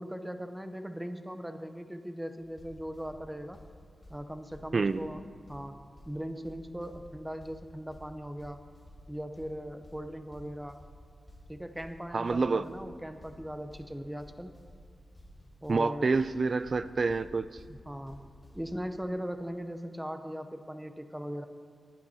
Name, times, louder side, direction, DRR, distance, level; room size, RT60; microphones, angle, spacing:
voice 1, 0.0-3.6 4.1-5.2 5.5-5.8 6.1-8.6 9.1-10.8 11.5-14.5 15.6-16.1 17.7-18.3 18.5-21.5, equal, 5° right, 8 dB, 0.7 m, -39 dB
sound 1, 2.4-18.9, equal, 25° left, 3.9 m, -54 dB
voice 2, 4.7-5.1 12.1-12.7 15.7-17.5, right 4 dB, 45° right, 15 dB, 0.3 m, -27 dB
20.0 x 11.5 x 2.8 m, 2.1 s
wide cardioid pair, 125°, 0 cm